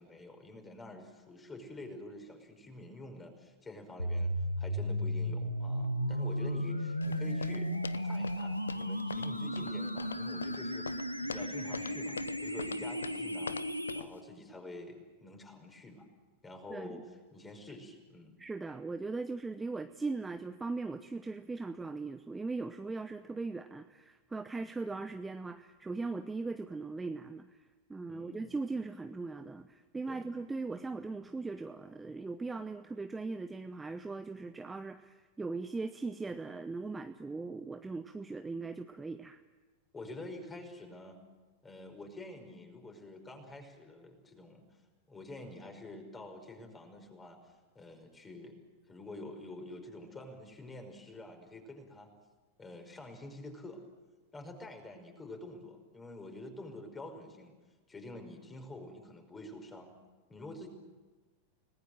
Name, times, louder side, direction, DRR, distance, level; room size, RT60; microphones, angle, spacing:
voice 1, 0.0-7.7 8.0-10.9 11.2-13.6 13.9-16.1 16.4-17.0 17.3-18.4 28.1-28.5 30.1-30.3 39.9-41.2 41.6-44.6 45.1-48.6 48.9-52.1 52.6-53.8 54.3-57.5 57.9-60.0 60.3-60.7, left 2 dB, 15° left, 5 dB, 5.2 m, -47 dB
sound 1, 4.0-14.0, equal, 90° left, 1.4 m, -35 dB
sound 2, 7.0-14.2, left 6 dB, 70° left, 0.7 m, -44 dB
voice 2, 16.7-17.0 18.4-39.4, right 3 dB, 10° right, 9 dB, 0.8 m, -39 dB
30.0 x 19.5 x 7.8 m, 1.3 s
figure-of-eight pair, 90°, 0 cm